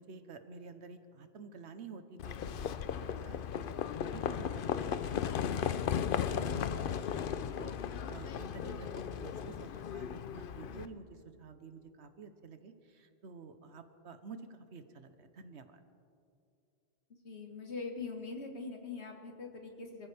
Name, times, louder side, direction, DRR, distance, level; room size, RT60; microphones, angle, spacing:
voice 1, 0.0-5.2 5.5-15.8, right 4 dB, 90° right, 9 dB, 1.3 m, -50 dB
Livestock farm animals working animals, 2.2-10.9, left 8 dB, 60° left, 0.7 m, -36 dB
voice 2, 17.2-20.1, left 4 dB, 85° left, 3 dB, 2.0 m, -42 dB
25.0 x 14.5 x 3.4 m, 2.5 s
omnidirectional pair, 1.1 m